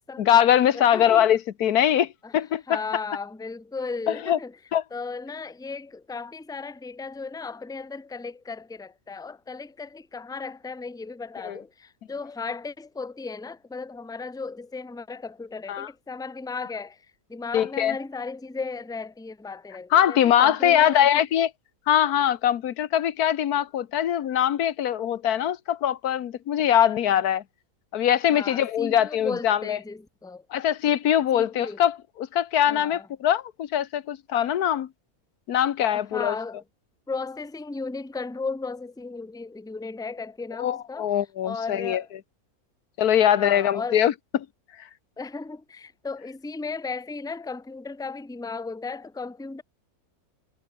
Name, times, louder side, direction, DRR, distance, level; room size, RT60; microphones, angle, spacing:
voice 1, 0.2-2.8 4.1-4.4 4.7-4.8 11.4-11.6 15.7-15.9 17.5-18.0 19.9-21.5 21.9-27.4 27.9-29.8 30.5-34.9 35.5-36.3 40.6-42.0 43.0-44.1, left 10 dB, 90° left, 1.5 m, -22 dB
voice 2, 0.7-1.3 2.2-2.3 2.7-4.6 4.9-21.2 28.3-30.5 31.3-31.8 32.7-33.1 35.9-36.6 37.1-41.1 41.4-42.1 43.3-44.0 45.2-49.6, left 4 dB, 5° left, 0.8 m, -35 dB
omnidirectional pair, 1.6 m